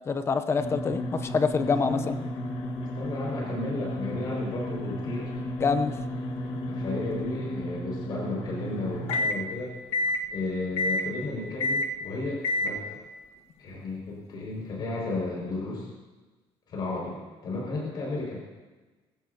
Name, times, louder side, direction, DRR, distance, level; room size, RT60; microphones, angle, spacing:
voice 1, 0.0-2.2 5.6-6.0, left 5 dB, 25° left, 10 dB, 0.6 m, -26 dB
sound 1, 0.6-9.4 9.9-10.3 10.8-11.1 11.6-11.9 12.4-12.8, left 1 dB, 65° left, 1.4 m, -31 dB
voice 2, 3.0-5.3 6.4-9.7 10.3-13.0 13.6-15.9 16.7-18.4, left 2 dB, 45° left, -3 dB, 5.5 m, -33 dB
20.0 x 16.0 x 2.8 m, 1.2 s
cardioid pair, 175°, 11 cm